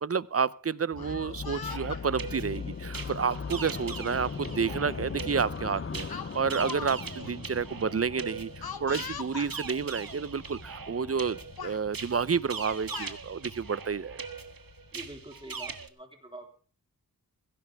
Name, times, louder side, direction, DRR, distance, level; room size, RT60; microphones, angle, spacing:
voice 1, 0.0-14.2, right 6 dB, 40° right, 20 dB, 0.6 m, -30 dB
Speech, 0.9-2.0 3.0-3.2 4.4-4.5 4.9-5.1 6.1-6.9 7.2-7.3 8.6-9.5 10.4-10.5 10.9-11.3 11.6-11.8 12.6-13.2, left 7 dB, 80° left, 1.0 m, -41 dB
sound 1, 0.9-15.8, left 5 dB, 35° left, 0.6 m, -41 dB
sound 2, 1.5-15.9, right 5 dB, 65° right, 1.4 m, -42 dB
voice 2, 14.9-16.6, right 1 dB, 15° right, 3 dB, 3.6 m, -46 dB
17.0 x 16.0 x 3.5 m, 0.40 s
wide cardioid pair, 85°, 37 cm